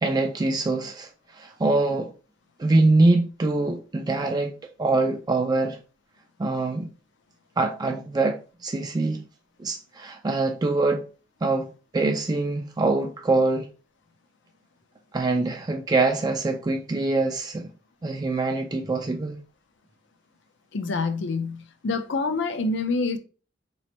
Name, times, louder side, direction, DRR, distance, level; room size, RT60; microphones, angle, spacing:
voice 1, 0.0-2.1 2.6-4.5 4.8-5.8 6.4-6.9 7.6-9.3 9.6-11.0 11.4-13.7 15.1-17.7 18.0-19.4, right 2 dB, 20° right, 0.3 m, -24 dB
voice 2, 20.7-23.2, left 3 dB, 65° left, 0.5 m, -27 dB
4.1 x 3.1 x 2.9 m
head